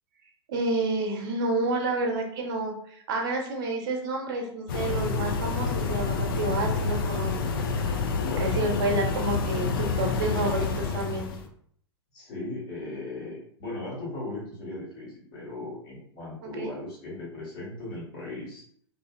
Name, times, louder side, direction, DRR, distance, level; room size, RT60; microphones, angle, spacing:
voice 1, 0.5-7.3 7.7-7.9 8.4-11.3 16.4-16.7, right 2 dB, 50° right, 2 dB, 0.7 m, -29 dB
sound 1, 4.7-11.5, left 4 dB, 50° left, 0.4 m, -28 dB
voice 2, 8.1-8.6 12.1-18.6, left 2 dB, 30° left, -7 dB, 1.4 m, -37 dB
2.8 x 2.6 x 2.4 m, 0.63 s
figure-of-eight pair, 95°, 14 cm